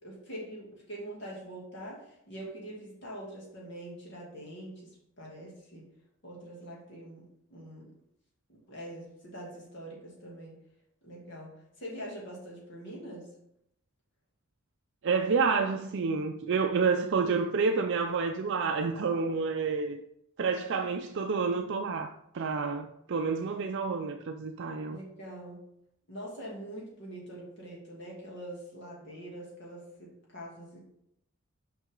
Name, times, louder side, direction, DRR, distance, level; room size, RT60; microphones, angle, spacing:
voice 1, 0.0-5.9 6.2-7.9 8.5-10.6 11.0-13.3 19.0-19.3 24.9-25.6 26.1-30.8, right 1 dB, 55° left, 2.5 m, -44 dB
voice 2, 15.0-20.0 20.4-25.0, right 5 dB, 55° right, 0.4 m, -29 dB
6.1 x 5.4 x 3.7 m
head